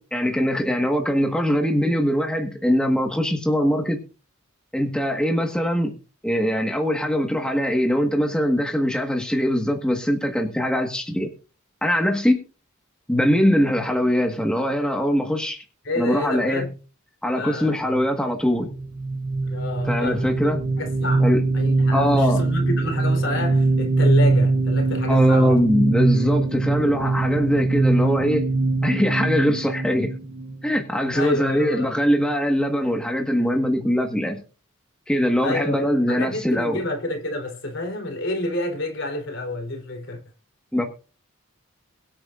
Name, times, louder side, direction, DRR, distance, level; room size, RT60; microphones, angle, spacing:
voice 1, 0.0-4.0 4.7-5.9 6.2-11.3 11.8-12.4 13.1-15.6 16.0-16.7 17.2-18.7 19.9-20.6 21.2-21.4 21.9-22.4 25.1-28.4 28.8-30.1 30.6-34.4 35.1-36.8 40.7-40.8, equal, 5° left, 1.6 m, -22 dB
voice 2, 15.8-16.7 17.3-18.0 19.5-20.4 20.8-25.6 31.1-32.0 35.4-40.2, left 2 dB, 60° left, 3.7 m, -29 dB
sound 1, 18.7-31.1, right 3 dB, 40° right, 0.7 m, -22 dB
23.0 x 8.8 x 2.5 m
head